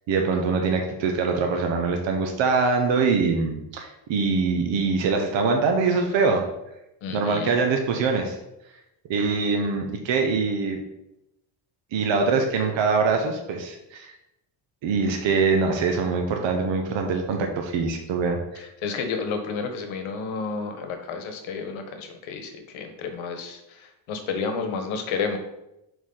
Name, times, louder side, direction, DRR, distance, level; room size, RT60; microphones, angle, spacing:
voice 1, 0.1-6.4 7.1-8.4 9.1-10.8 11.9-14.1 14.8-18.6, right 4 dB, 65° right, 3 dB, 1.0 m, -23 dB
voice 2, 7.0-7.5 18.5-25.4, left 5 dB, 80° left, 6 dB, 1.2 m, -31 dB
6.5 x 4.6 x 3.9 m, 0.88 s
cardioid pair, 155°, 47 cm